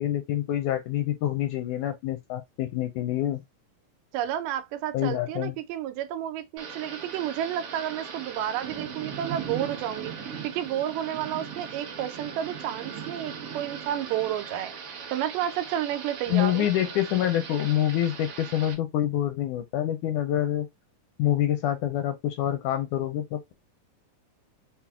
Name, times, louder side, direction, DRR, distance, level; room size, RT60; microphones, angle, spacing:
voice 1, 0.0-3.4 4.9-5.6 16.3-20.7 21.2-23.5, left 12 dB, 80° left, 1.9 m, -26 dB
voice 2, 4.1-10.1 10.4-14.7 15.1-16.7, right 11 dB, 90° right, 2.3 m, -31 dB
Thunder / Rain, 6.6-18.7, right 6 dB, 65° right, 1.5 m, -39 dB
5.9 x 2.0 x 3.4 m
omnidirectional pair, 3.8 m